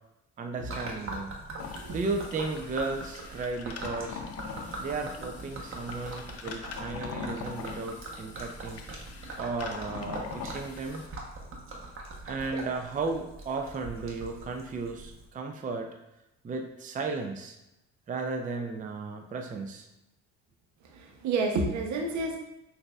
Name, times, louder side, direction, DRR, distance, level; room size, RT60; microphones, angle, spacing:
voice 1, 0.4-1.4 1.9-4.2 4.8-8.8 9.4-11.0 12.2-15.9 16.4-17.6 18.1-19.9, right 3 dB, 25° right, 4 dB, 0.5 m, -34 dB
Gurgling / Liquid, 0.7-15.3, right 2 dB, 40° right, 1.0 m, -42 dB
sound 1, 1.6-11.1, left 5 dB, 50° left, 0.6 m, -42 dB
voice 2, 20.8-22.4, right 3 dB, 65° right, 2 dB, 0.8 m, -30 dB
6.1 x 2.6 x 2.3 m, 0.91 s
supercardioid pair, 75°, 31 cm